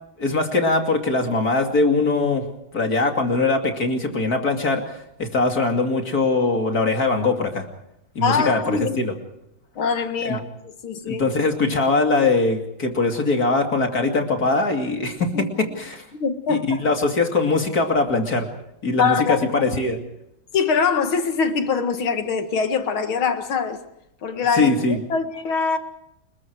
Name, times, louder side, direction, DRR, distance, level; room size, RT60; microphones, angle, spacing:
voice 1, 0.2-2.5 2.7-7.6 8.1-9.1 10.2-10.4 11.0-16.0 16.5-18.5 18.8-20.0 24.5-25.0, left 3 dB, 45° left, 3.1 m, -21 dB
voice 2, 8.2-9.0 9.8-11.2 15.3-15.5 16.1-16.8 19.0-19.4 20.5-23.8 24.2-25.8, left 5 dB, 85° left, 2.6 m, -23 dB
30.0 x 21.0 x 4.8 m
omnidirectional pair, 2.2 m